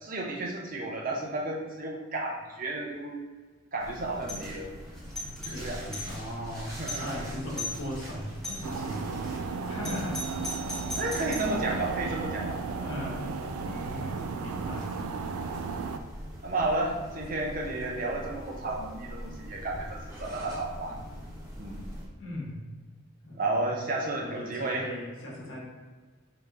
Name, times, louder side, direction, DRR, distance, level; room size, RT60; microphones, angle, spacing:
voice 1, 0.0-3.2 3.7-4.7 5.4-5.8 6.8-7.2 11.0-12.6 13.5-13.6 16.4-21.0 21.6-21.8 23.4-24.9, right 2 dB, 40° right, -1 dB, 0.6 m, -32 dB
sound 1, 3.8-22.1, equal, 15° right, 0.9 m, -43 dB
Doorbell, 4.2-4.5 4.9-6.2 6.6-6.7 6.9-7.2 7.6-7.8 8.4-8.8 9.8-11.6, left 1 dB, ahead, 0.4 m, -38 dB
voice 2, 5.1-10.4 11.0-11.2 12.6-13.3 13.6-15.0 22.2-22.6 23.2-23.7 24.1-25.6, left 1 dB, 70° left, -3 dB, 1.1 m, -39 dB
sound 2, 8.6-16.0, right 4 dB, 90° right, 0.3 m, -34 dB
3.5 x 2.9 x 3.7 m, 1.4 s
head